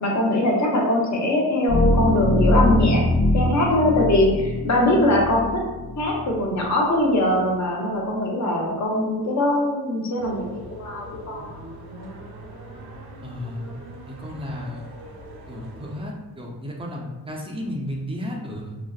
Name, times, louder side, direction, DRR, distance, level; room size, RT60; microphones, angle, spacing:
voice 1, 0.0-3.0 3.3-5.6 6.0-11.5, left 1 dB, 45° left, -1 dB, 0.6 m, -22 dB
sound 1, 1.7-6.4, left 1 dB, 70° left, 1.0 m, -22 dB
Late Night Suburbia Ambience, 10.2-16.0, right 1 dB, 70° right, 0.6 m, -41 dB
voice 2, 13.2-13.7 14.1-14.9 15.5-18.8, left 1 dB, 15° right, -1 dB, 0.4 m, -33 dB
2.6 x 2.1 x 2.3 m, 1.1 s
cardioid pair, 95°, 39 cm